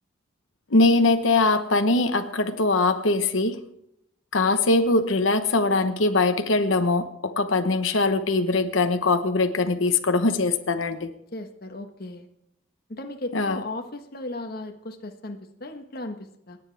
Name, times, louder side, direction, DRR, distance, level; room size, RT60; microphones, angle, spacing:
voice 1, 0.7-3.6 4.3-11.1 13.3-13.6, left 3 dB, 90° left, 7 dB, 1.1 m, -22 dB
voice 2, 11.3-12.3 12.9-16.6, left 2 dB, 50° left, 5 dB, 1.4 m, -36 dB
28.0 x 9.8 x 3.4 m, 0.81 s
head